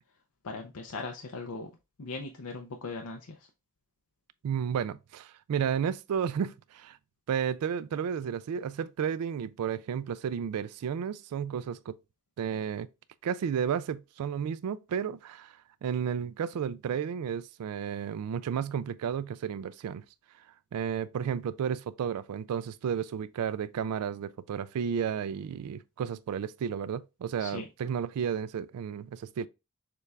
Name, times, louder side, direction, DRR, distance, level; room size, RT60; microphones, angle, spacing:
voice 1, 0.4-1.7 2.0-3.5 27.4-27.7, left 3 dB, 80° left, 0.6 m, -39 dB
voice 2, 4.4-7.0 7.3-12.0 12.4-12.9 13.2-20.0 20.7-29.5, right 7 dB, 80° right, 0.3 m, -32 dB
6.7 x 2.4 x 3.3 m
head